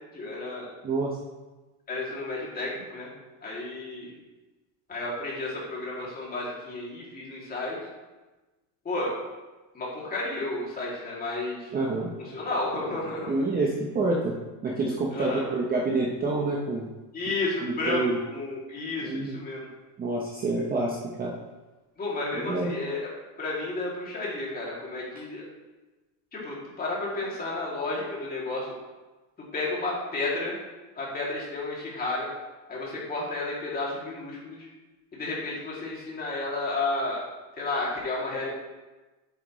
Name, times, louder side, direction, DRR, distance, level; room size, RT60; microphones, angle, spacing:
voice 1, 0.1-0.7 1.9-3.1 3.4-4.1 4.9-7.8 8.8-9.1 9.7-11.7 12.2-13.4 15.1-15.5 17.1-19.7 22.0-23.0 23.4-25.4 26.3-28.7 29.4-30.6 31.0-32.3 32.7-34.7 35.1-37.2 37.5-38.6, left 2 dB, 20° left, -5 dB, 2.6 m, -32 dB
voice 2, 0.8-1.2 11.7-12.1 13.3-14.4 14.6-16.9 17.6-18.2 19.0-19.4 20.0-21.3 22.4-22.7, right 2 dB, 20° right, -2 dB, 0.8 m, -27 dB
8.3 x 8.1 x 3.1 m, 1.2 s
cardioid pair, 150°, 43 cm